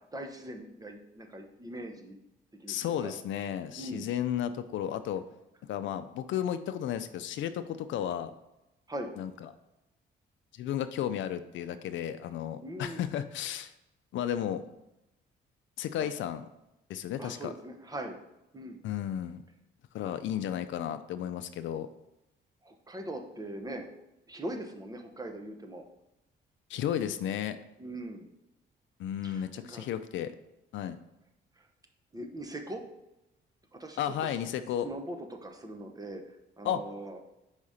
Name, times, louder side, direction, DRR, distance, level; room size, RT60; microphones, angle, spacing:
voice 1, 0.1-2.2 2.6-3.1 3.8-4.1 8.9-9.1 12.6-13.1 16.0-16.1 17.2-18.2 18.5-18.8 22.6-25.8 26.8-27.1 27.8-28.3 29.2-29.8 31.6-31.7 32.1-32.8 33.8-34.3 34.8-37.2, right 1 dB, 20° right, 4 dB, 0.9 m, -41 dB
voice 2, 2.7-5.2 5.7-8.3 9.2-9.3 10.5-13.7 14.1-14.6 15.8-16.5 16.9-17.5 18.8-19.4 19.9-21.9 26.7-27.6 29.0-30.3 30.7-31.0 34.0-34.9 36.6-36.8, left 10 dB, 75° left, 11 dB, 0.4 m, -33 dB
4.9 x 4.2 x 4.9 m, 0.91 s
cardioid pair, 90°, 20 cm